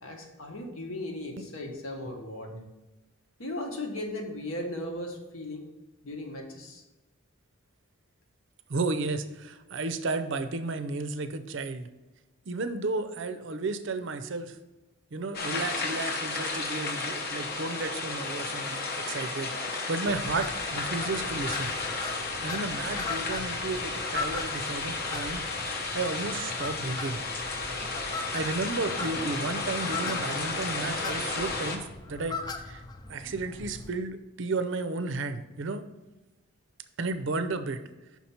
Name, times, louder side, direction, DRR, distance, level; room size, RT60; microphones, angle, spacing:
voice 1, 0.0-2.5 3.4-5.6 6.0-6.8, left 1 dB, 70° left, 3 dB, 1.1 m, -37 dB
voice 2, 8.7-11.9 12.5-14.6 15.1-21.7 22.4-25.4 25.9-27.2 28.3-32.8 33.1-35.8 37.0-37.8, right 3 dB, 55° right, 9 dB, 0.5 m, -33 dB
sound 1, 15.3-31.8, left 3 dB, 45° left, 0.8 m, -33 dB
sound 2, 20.1-33.9, left 3 dB, 20° left, 0.4 m, -40 dB
5.9 x 4.3 x 5.7 m, 1.1 s
head